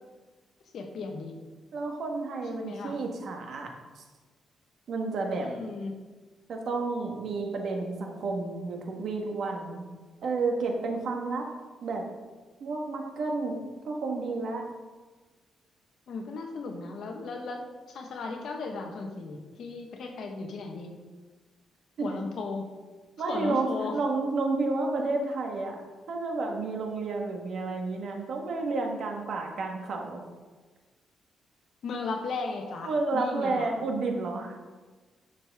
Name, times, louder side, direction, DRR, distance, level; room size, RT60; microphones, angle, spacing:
voice 1, 0.7-1.3 2.5-3.0 5.4-6.0 16.1-20.9 22.0-22.7 23.3-24.0 31.8-33.7, left 3 dB, 60° left, 3 dB, 1.2 m, -36 dB
voice 2, 1.7-3.7 4.0-4.1 4.9-5.5 6.5-9.8 10.2-11.5 11.8-12.0 12.6-14.6 22.0-22.1 23.2-25.8 26.1-30.2 32.8-34.5, right 3 dB, 55° right, 2 dB, 1.4 m, -31 dB
10.5 x 6.4 x 3.6 m, 1.3 s
cardioid pair, 155°, 0 cm